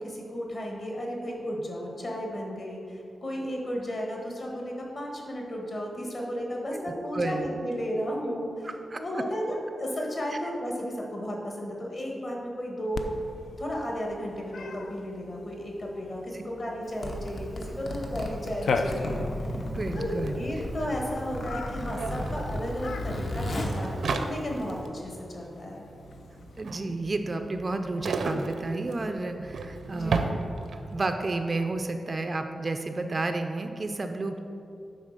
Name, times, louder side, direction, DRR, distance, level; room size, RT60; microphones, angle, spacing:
voice 1, 0.0-8.7 8.9-13.2 13.6-19.6 19.9-25.8 29.9-30.3, equal, 40° left, -1 dB, 1.5 m, -34 dB
voice 2, 7.1-7.5 8.6-9.2 16.3-16.4 19.7-20.4 26.6-30.3 30.9-34.4, right 2 dB, 30° right, 6 dB, 0.4 m, -31 dB
Cat, 12.9-26.6, left 3 dB, 80° left, 0.5 m, -39 dB
Zipper (clothing), 16.8-24.8, left 1 dB, 55° left, 1.0 m, -34 dB
sound 1, 20.3-20.4 20.5-31.0, right 3 dB, 80° right, 0.5 m, -35 dB
9.5 x 4.0 x 6.5 m, 2.6 s
wide cardioid pair, 170°, 0 cm